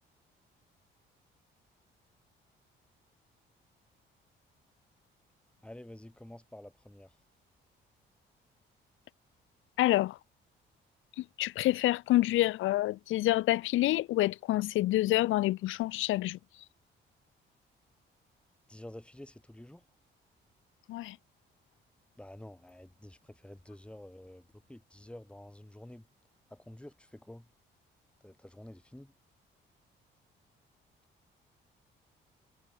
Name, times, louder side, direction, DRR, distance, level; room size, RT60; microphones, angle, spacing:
voice 1, 5.6-7.2 18.7-19.8 22.2-26.1 26.5-27.5 28.2-29.1, left 1 dB, 5° left, 2.5 m, -49 dB
voice 2, 9.8-10.2 11.1-16.7 20.9-21.2, left 16 dB, 85° left, 0.9 m, -28 dB
cardioid pair, 90°, 20 cm